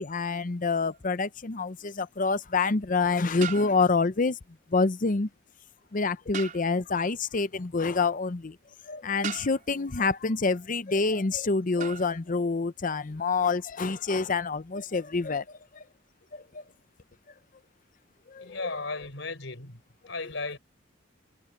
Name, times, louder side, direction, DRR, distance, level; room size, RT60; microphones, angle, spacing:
voice 1, 0.0-4.4 4.7-5.3 5.9-8.6 8.9-15.4 15.8-15.9 16.3-16.4 18.3-18.5, left 4 dB, 45° left, 0.7 m, -27 dB
sound 1, 0.9-1.1 3.4-4.2 6.3-7.0 9.2-9.9 11.8-12.2, right 7 dB, 45° right, 4.4 m, -38 dB
voice 2, 18.4-19.8 20.1-20.6, left 3 dB, 70° left, 5.3 m, -35 dB
head